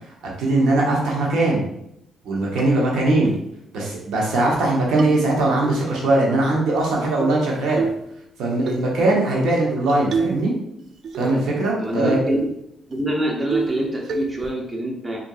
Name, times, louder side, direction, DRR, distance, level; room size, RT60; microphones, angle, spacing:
voice 1, 0.4-1.6 2.2-3.3 3.7-7.9 8.4-10.5 11.2-12.2, right 2 dB, 80° right, -3 dB, 0.9 m, -20 dB
sound 1, 2.6-2.7 3.2-3.4 3.8-3.9 4.2-4.6 5.0-5.7 6.8-7.4 7.8-8.1 8.7-8.9 9.9-10.5 10.8-11.5 11.8-11.9 12.3-12.5 12.9-13.0 13.5-13.8 14.1-14.5, right 4 dB, 60° right, 0.4 m, -28 dB
voice 2, 11.8-12.5 12.9-15.2, right 1 dB, 20° right, -1 dB, 0.7 m, -25 dB
3.7 x 2.6 x 2.3 m, 0.78 s
cardioid pair, 90°, 0 cm